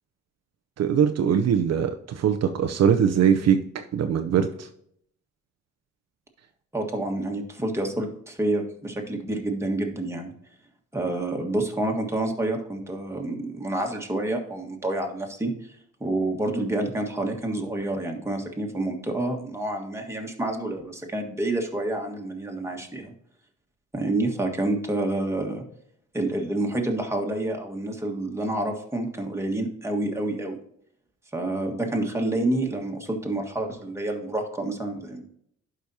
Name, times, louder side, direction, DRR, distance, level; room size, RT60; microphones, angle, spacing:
voice 1, 0.8-4.7, right 8 dB, 60° right, 6 dB, 0.7 m, -22 dB
voice 2, 6.7-10.3 10.9-15.5 16.0-23.1 23.9-25.6 26.1-30.6 31.3-35.2, right 2 dB, 10° right, 1 dB, 1.6 m, -28 dB
11.5 x 5.1 x 2.8 m, 0.70 s
cardioid pair, 90°, 30 cm